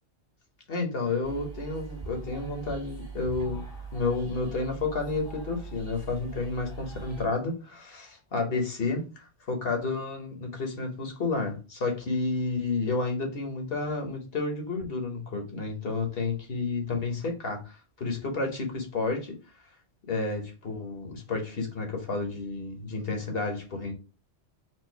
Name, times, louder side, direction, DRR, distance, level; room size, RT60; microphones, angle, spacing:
voice 1, 0.7-3.6 3.9-19.3 20.1-23.9, left 3 dB, 55° left, 1.2 m, -31 dB
sound 1, 1.2-7.3, right 5 dB, 50° right, 1.7 m, -41 dB
4.5 x 2.6 x 4.4 m
omnidirectional pair, 1.3 m